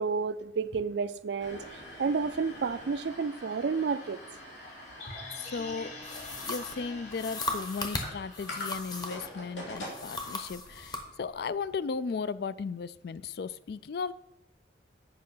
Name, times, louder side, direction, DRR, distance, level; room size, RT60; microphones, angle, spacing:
voice 1, 0.0-1.6 2.0-4.2, right 5 dB, 70° right, 0.4 m, -30 dB
sound 1, 1.4-11.8, left 1 dB, 90° left, 2.9 m, -45 dB
sound 2, 5.0-9.2 9.5-9.6, left 2 dB, 40° left, 2.1 m, -47 dB
voice 2, 5.3-14.1, left 5 dB, 60° left, 0.3 m, -36 dB
sound 3, 6.0-9.3 9.8-11.1, left 2 dB, 25° left, 0.9 m, -37 dB
8.8 x 5.2 x 5.6 m
head